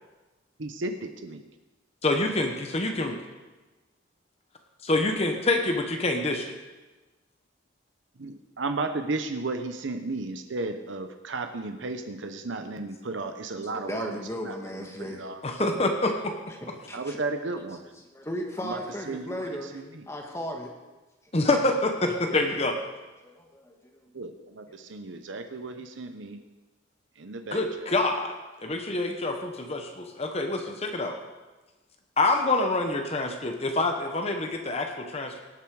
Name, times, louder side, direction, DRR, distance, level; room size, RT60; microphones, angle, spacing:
voice 1, 0.6-1.4 8.2-14.2 14.4-14.5 15.0-15.8 16.9-17.8 18.6-18.8 19.1-19.5 19.7-19.8 24.1-26.4 27.2-27.9, right 3 dB, 70° right, 7 dB, 0.8 m, -34 dB
voice 2, 2.0-3.2 4.8-6.5 15.4-16.3 21.3-22.7 27.5-28.3 28.6-31.2 32.2-35.4, left 2 dB, 30° left, 4 dB, 0.9 m, -26 dB
voice 3, 13.2-15.3 16.8-17.2 18.1-20.7 22.0-22.6 23.2-23.8, equal, 15° left, 1 dB, 1.3 m, -36 dB
18.5 x 6.9 x 4.8 m, 1.2 s
head